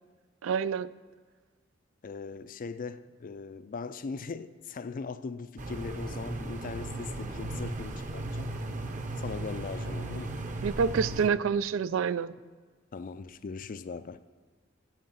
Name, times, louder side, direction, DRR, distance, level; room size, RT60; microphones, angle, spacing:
voice 1, 0.4-0.9 10.6-12.3, right 6 dB, 80° right, 0.4 m, -27 dB
voice 2, 2.0-8.5 9.2-10.4 12.9-14.2, left 4 dB, 45° left, 0.4 m, -39 dB
sound 1, 5.6-11.3, right 2 dB, 40° right, 0.8 m, -36 dB
9.2 x 7.8 x 7.7 m
head